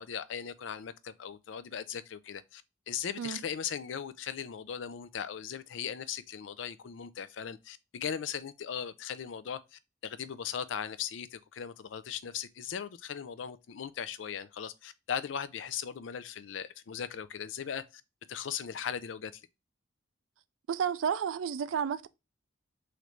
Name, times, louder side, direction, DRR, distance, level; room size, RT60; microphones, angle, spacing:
voice 1, 0.0-2.6 2.9-18.0 18.3-19.4, left 8 dB, 70° left, 0.4 m, -38 dB
voice 2, 20.7-22.1, right 7 dB, 90° right, 0.4 m, -31 dB
3.8 x 3.2 x 3.0 m
head